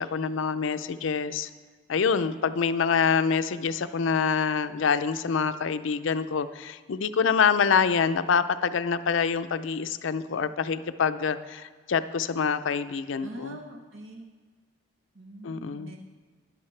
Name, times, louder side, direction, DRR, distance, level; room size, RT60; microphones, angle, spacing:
voice 1, 0.0-1.5 1.9-13.6 15.4-15.9, left 6 dB, 85° left, 12 dB, 0.5 m, -26 dB
voice 2, 13.2-14.3 15.1-16.0, right 1 dB, 80° right, 2 dB, 0.9 m, -43 dB
13.0 x 10.5 x 3.3 m, 1.4 s
head